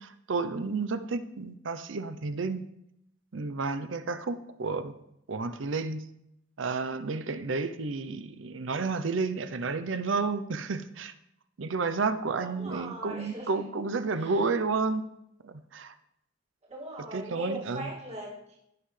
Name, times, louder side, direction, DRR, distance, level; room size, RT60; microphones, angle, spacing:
voice 1, 0.0-2.6 3.3-4.9 5.3-6.0 6.6-11.1 11.6-15.1 15.4-15.9 17.1-17.9, right 4 dB, 85° right, 11 dB, 0.7 m, -31 dB
voice 2, 12.4-13.7 14.2-14.4 16.7-18.6, right 1 dB, 35° right, -4 dB, 2.3 m, -40 dB
16.5 x 5.6 x 3.3 m, 0.80 s
head